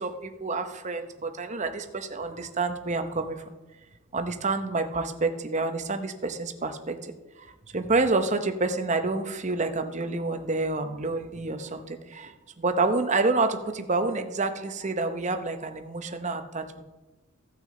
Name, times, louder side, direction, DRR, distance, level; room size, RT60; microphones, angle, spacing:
voice 1, 0.0-3.4 4.1-7.5 7.7-16.8, right 3 dB, 30° right, 7 dB, 0.8 m, -28 dB
16.0 x 6.2 x 3.8 m, 1.1 s
head